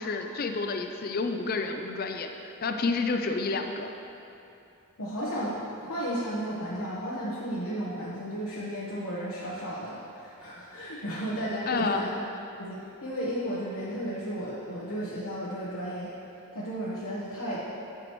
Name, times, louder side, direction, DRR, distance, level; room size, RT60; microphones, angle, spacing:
voice 1, 0.0-3.9 11.7-12.0, left 3 dB, 40° left, 5 dB, 0.4 m, -30 dB
voice 2, 5.0-12.1 12.6-16.1 16.5-17.6, equal, 80° left, -9 dB, 1.2 m, -34 dB
11.0 x 6.2 x 3.1 m, 2.8 s
head